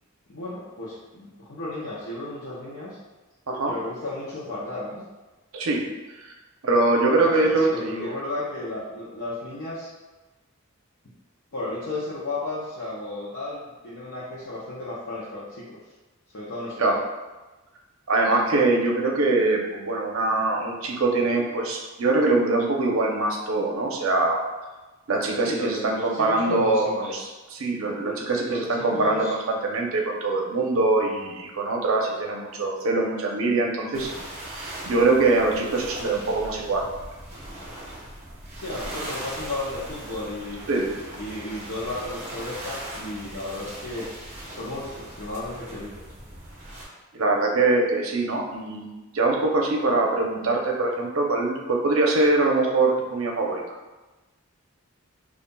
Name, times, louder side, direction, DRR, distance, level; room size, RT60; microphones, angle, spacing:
voice 1, 0.3-3.0 3.7-5.1 7.2-9.9 11.5-15.8 16.3-17.0 25.5-27.3 28.0-29.4 36.0-36.2 38.6-40.6 41.1-44.1 44.4-45.9, left 2 dB, 65° left, -9 dB, 0.7 m, -34 dB
voice 2, 5.5-5.9 6.2-6.3 6.6-8.1 16.8-17.0 18.1-24.4 25.1-34.1 34.5-36.9 40.7-40.9 47.1-53.6, right 2 dB, 75° right, 0 dB, 0.6 m, -23 dB
sound 1, 33.9-46.9, right 1 dB, 35° right, 0.8 m, -39 dB
5.3 x 2.4 x 2.2 m, 1.2 s
head